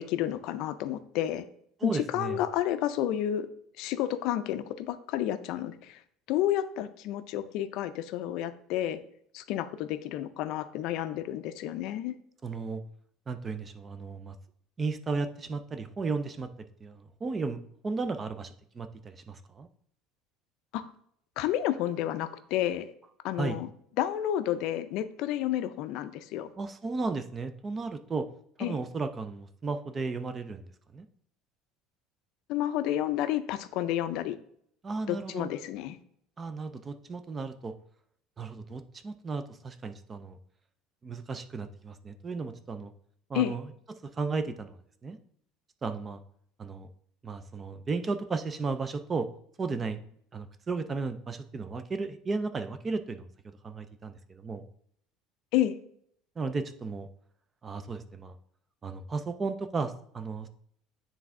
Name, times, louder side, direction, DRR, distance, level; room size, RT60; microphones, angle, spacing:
voice 1, 0.0-1.5 1.8-3.5 3.8-6.0 6.3-9.0 9.3-12.1 20.7-20.9 21.4-22.9 23.2-23.7 24.0-26.5 28.6-28.8 32.5-34.4 35.1-36.0 43.3-43.5 55.5-55.8, left 12 dB, 55° left, 12 dB, 0.4 m, -30 dB
voice 2, 1.8-2.4 12.4-12.8 13.3-14.4 14.8-19.7 23.4-23.6 26.6-28.3 28.6-30.7 30.9-31.1 34.8-35.5 36.4-37.7 38.4-40.4 41.0-42.9 43.3-44.8 45.0-45.2 45.8-46.2 46.6-46.9 47.2-49.3 49.6-50.0 50.3-53.3 53.6-54.6 56.4-57.1 57.6-58.3 58.8-60.5, right 4 dB, 20° right, 11 dB, 0.3 m, -34 dB
9.4 x 3.4 x 3.6 m, 0.67 s
cardioid pair, 165°, 0 cm